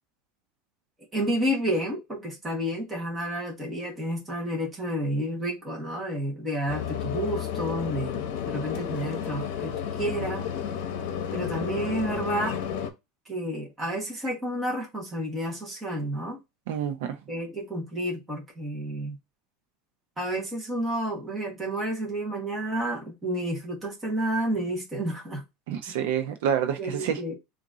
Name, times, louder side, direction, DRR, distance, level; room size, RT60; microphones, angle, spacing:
voice 1, 1.1-10.4 11.3-12.6 13.3-16.4 17.3-19.2 20.2-25.4 25.9-26.0 26.8-27.4, right 1 dB, 10° right, 1.2 m, -30 dB
sound 1, 6.7-12.9, left 8 dB, 60° left, 0.8 m, -32 dB
voice 2, 16.7-17.2 25.7-27.2, right 9 dB, 70° right, 0.6 m, -28 dB
3.9 x 2.6 x 3.6 m
supercardioid pair, 180°, 0 cm